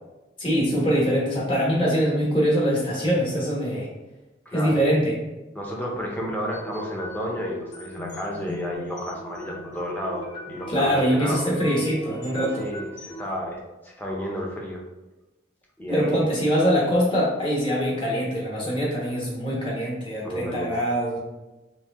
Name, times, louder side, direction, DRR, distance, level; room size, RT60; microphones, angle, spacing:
voice 1, 0.4-3.9 4.5-5.2 10.7-12.7 15.9-21.2, equal, 25° left, -4 dB, 1.1 m, -23 dB
voice 2, 4.5-4.8 5.5-11.4 12.6-14.8 15.8-16.2 20.2-20.7, equal, 10° left, -2 dB, 0.6 m, -32 dB
sound 1, 6.5-13.3, equal, 60° left, 1.0 m, -39 dB
3.2 x 3.2 x 3.4 m, 1.1 s
head